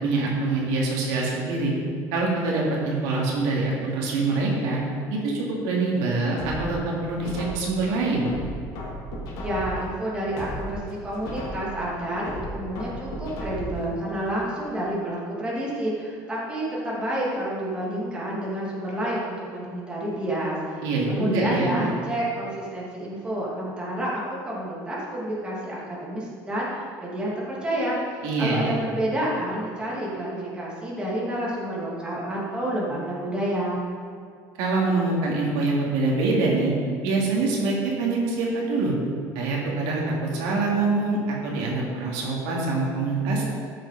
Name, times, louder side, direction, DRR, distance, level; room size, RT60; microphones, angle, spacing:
voice 1, 0.0-1.7 2.1-4.8 5.1-8.3 20.8-21.7 28.2-28.8 34.6-36.7 37.0-38.9 39.3-43.5, right 3 dB, 90° right, -3 dB, 2.8 m, -25 dB
sound 1, 6.4-7.8 8.3-9.9 10.3-11.8 12.3-13.9 14.3-14.4, equal, 60° left, 2.9 m, -35 dB
voice 2, 9.4-28.0 28.4-33.8, right 1 dB, 15° right, -6 dB, 2.8 m, -29 dB
13.0 x 7.7 x 5.1 m, 2.3 s
cardioid pair, 145°, 7 cm